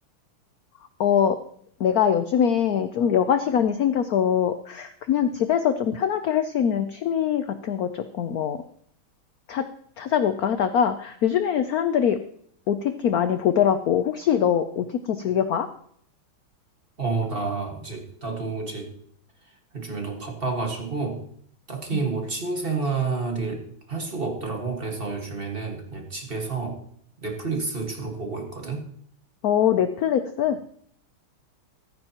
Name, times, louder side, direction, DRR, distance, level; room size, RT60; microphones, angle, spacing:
voice 1, 1.0-1.4 1.8-8.6 9.5-9.7 10.0-12.2 12.7-15.7 21.9-22.0 29.4-30.6, left 8 dB, 70° left, 10 dB, 0.9 m, -23 dB
voice 2, 17.0-18.9 19.7-21.2 21.7-26.8 27.2-28.9, right 4 dB, 30° right, 2 dB, 1.8 m, -29 dB
15.0 x 14.5 x 3.0 m, 0.64 s
omnidirectional pair, 2.3 m